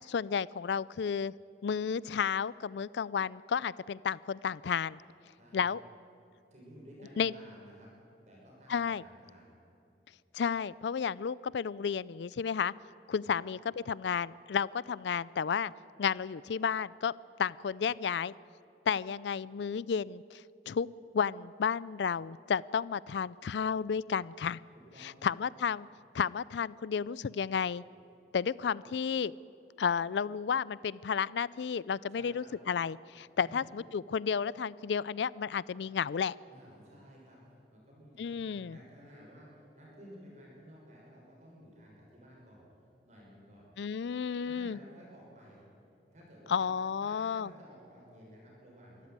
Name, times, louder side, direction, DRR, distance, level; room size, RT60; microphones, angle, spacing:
voice 1, 0.1-1.3 1.6-5.0 5.5-5.8 7.2-7.3 8.7-9.0 10.3-12.7 13.1-13.6 13.9-15.7 16.0-17.1 17.4-18.3 18.9-20.9 21.1-24.6 25.0-25.9 26.1-27.8 28.3-29.3 29.8-36.4 38.2-38.8 43.8-44.8 46.5-47.5, left 6 dB, 85° left, 21 dB, 0.4 m, -32 dB
voice 2, 5.4-5.7 6.5-7.9 8.2-9.5 13.4-13.5 24.7-25.3 32.1-32.5 33.4-33.7 36.5-42.7 43.0-43.7 44.4-45.6 46.1-46.7 47.0-49.1, equal, 40° right, -3 dB, 6.4 m, -54 dB
24.5 x 13.5 x 9.5 m, 2.8 s
head